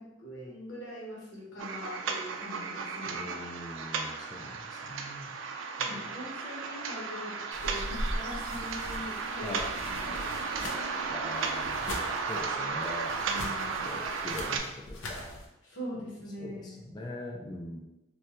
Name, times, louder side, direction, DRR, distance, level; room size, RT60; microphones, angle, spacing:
voice 1, 0.0-3.2 5.8-7.3 7.6-9.6 9.8-10.1 13.2-14.0 15.6-16.8, equal, 70° left, -5 dB, 1.0 m, -42 dB
sound 1, 1.6-14.6, right 5 dB, 75° right, 0.3 m, -34 dB
voice 2, 3.1-5.3 5.8-6.1 9.4-9.7 11.1-13.1 13.9-15.2 16.4-17.8, left 2 dB, 20° left, 0 dB, 0.3 m, -42 dB
sound 2, 7.5-15.5, left 1 dB, 90° left, 0.6 m, -41 dB
3.1 x 2.2 x 2.9 m, 0.98 s
head